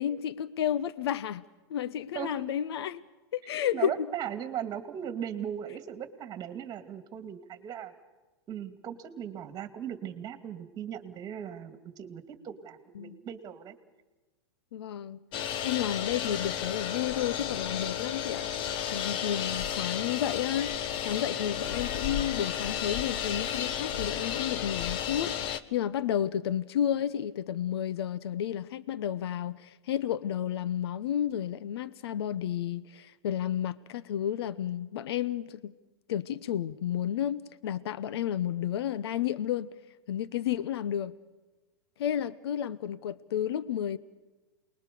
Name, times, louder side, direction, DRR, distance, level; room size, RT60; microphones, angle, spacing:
voice 1, 0.0-1.4 1.7-3.0 3.3-3.9 12.9-13.2 14.7-15.2 15.6-18.5 18.9-20.7 21.0-35.7 36.1-39.7 40.1-41.1 42.0-44.0, left 10 dB, 70° left, 0.8 m, -31 dB
voice 2, 2.1-2.5 3.7-7.9 8.5-13.7, right 9 dB, 30° right, 2.4 m, -38 dB
sound 1, 15.3-25.6, left 9 dB, 40° left, 1.1 m, -33 dB
28.5 x 20.5 x 6.9 m
hypercardioid pair, 120°, 14 cm